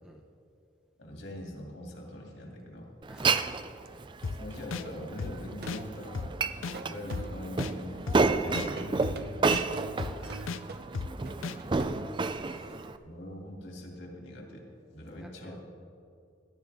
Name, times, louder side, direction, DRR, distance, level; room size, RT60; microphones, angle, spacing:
voice 1, 1.0-2.9 4.3-6.3 6.8-9.4 11.3-11.6 13.0-14.7 14.9-15.6, left 1 dB, 65° left, 0 dB, 2.6 m, -43 dB
voice 2, 3.0-3.4 6.6-6.8 9.9-10.8 12.4-12.9 15.1-15.6, right 1 dB, 5° right, 0 dB, 0.9 m, -49 dB
Glass, 3.0-13.0, right 4 dB, 25° right, 0.4 m, -31 dB
sound 1, 3.9-4.0 5.6-6.3 6.7-7.7 8.8-12.1, right 2 dB, 50° right, 0.7 m, -44 dB
sound 2, 4.2-4.4 4.7-4.8 5.2-5.3 5.7-5.8 6.1-6.3 6.6-6.8 7.1-7.2 7.6-7.7 8.1-8.2 8.5-8.7 9.0-9.2 9.5-9.6 10.0-10.1 10.5-10.6 10.9-11.1 11.4-11.6, left 4 dB, 90° left, 0.5 m, -34 dB
18.0 x 12.0 x 3.5 m, 2.5 s
head